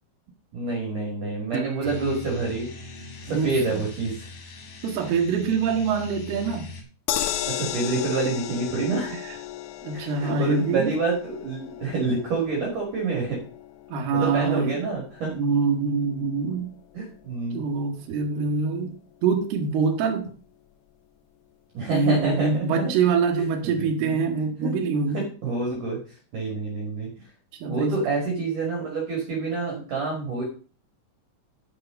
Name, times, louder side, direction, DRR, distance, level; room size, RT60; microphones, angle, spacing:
voice 1, 0.5-2.7 3.2-4.3 7.5-9.2 9.9-13.4 14.1-15.3 16.9-17.6 21.7-22.9 23.3-26.0 26.3-27.1 27.7-30.4, right 3 dB, 50° right, -1 dB, 3.1 m, -28 dB
Guitar, 1.5-4.7, right 7 dB, 80° right, 2.6 m, -39 dB
sound 1, 1.8-6.8, left 3 dB, 55° left, 2.6 m, -42 dB
voice 2, 3.3-3.8 4.8-6.7 7.1-7.2 9.1-9.4 9.8-10.9 13.9-14.8 15.3-16.7 17.5-19.0 19.2-20.3 21.9-25.3 27.5-28.1, right 5 dB, 65° right, 2 dB, 2.9 m, -25 dB
sound 2, 7.1-19.3 19.7-19.8 20.1-20.2, left 12 dB, 80° left, 2.5 m, -36 dB
9.3 x 6.7 x 5.2 m, 0.39 s
omnidirectional pair, 5.9 m